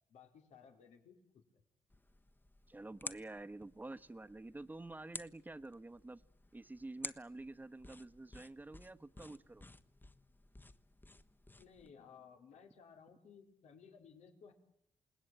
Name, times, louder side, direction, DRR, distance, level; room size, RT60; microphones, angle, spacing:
voice 1, 0.1-1.6 11.6-14.5, left 6 dB, 85° left, 4 dB, 4.3 m, -59 dB
sound 1, 1.9-11.9, left 2 dB, 15° left, 1.4 m, -53 dB
voice 2, 2.7-6.2 6.5-9.7, right 2 dB, 15° right, 12 dB, 1.3 m, -49 dB
28.0 x 19.5 x 9.1 m, 0.75 s
cardioid pair, 80°, 11 cm